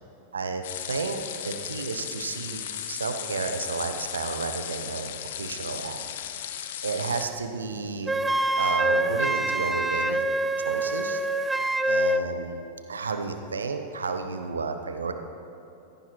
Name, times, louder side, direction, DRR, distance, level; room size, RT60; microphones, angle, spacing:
voice 1, 0.3-6.0 6.3-6.5 6.8-8.1 8.5-10.2 10.6-11.2 11.8-15.1, right 4 dB, 70° right, 7 dB, 0.8 m, -32 dB
sound 1, 0.6-7.3, left 10 dB, 55° left, 0.7 m, -36 dB
Wind instrument woodwind instrument, 8.1-12.3, right 1 dB, 10° right, 0.4 m, -25 dB
16.0 x 14.5 x 3.1 m, 2.9 s
figure-of-eight pair, 90°, 0 cm